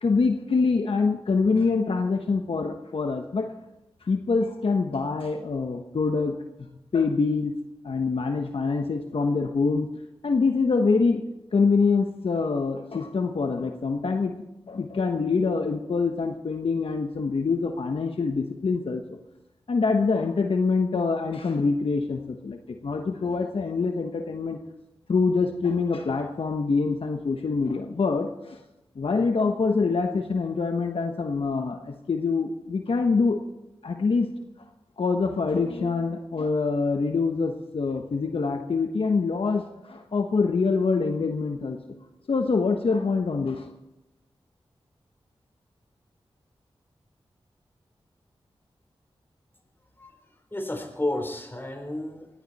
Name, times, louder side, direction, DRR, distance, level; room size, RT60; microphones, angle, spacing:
voice 1, 0.0-3.5 4.0-6.4 6.9-7.5 7.8-9.9 10.2-11.2 11.5-14.3 14.7-19.2 19.7-24.6 25.1-28.6 29.0-33.4 33.8-34.3 35.0-41.8 42.3-43.7, left 4 dB, 65° left, 4 dB, 1.1 m, -25 dB
voice 2, 50.5-52.3, left 1 dB, 20° left, 4 dB, 3.9 m, -31 dB
19.5 x 15.0 x 4.2 m, 0.94 s
cardioid pair, 50°, 10 cm